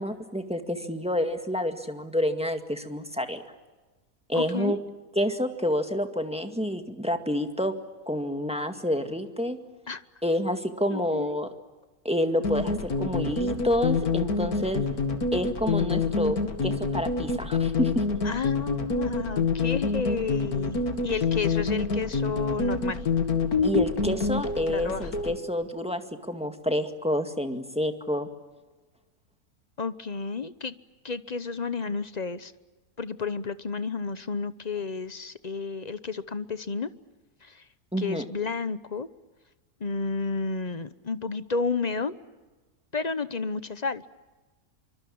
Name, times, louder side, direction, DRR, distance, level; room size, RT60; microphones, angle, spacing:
voice 1, 0.0-3.4 4.3-4.8 5.2-7.7 8.1-9.6 10.2-11.5 12.0-14.8 15.3-18.0 23.6-26.0 26.3-28.3 37.9-38.2, equal, 5° right, 6 dB, 1.9 m, -28 dB
voice 2, 4.3-4.8 9.9-10.0 10.9-11.4 18.2-23.0 24.7-25.1 29.8-30.7 31.0-32.5 33.0-36.9 37.4-37.6 38.0-39.1 39.8-42.1 42.9-44.0, left 4 dB, 35° left, 13 dB, 0.8 m, -31 dB
sound 1, 12.4-25.4, left 4 dB, 70° left, 2.5 m, -27 dB
25.5 x 24.5 x 8.6 m, 1.2 s
omnidirectional pair, 1.6 m